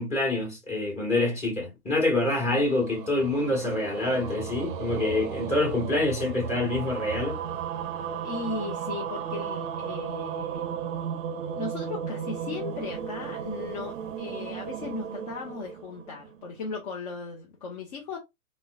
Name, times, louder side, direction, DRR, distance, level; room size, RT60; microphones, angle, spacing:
voice 1, 0.0-7.4, left 2 dB, 15° left, 1.6 m, -26 dB
sound 1, 2.1-16.6, right 8 dB, 35° right, 0.6 m, -35 dB
voice 2, 8.2-10.8 11.6-18.2, left 4 dB, 30° left, 0.5 m, -37 dB
3.7 x 2.0 x 2.3 m
hypercardioid pair, 125°, 43 cm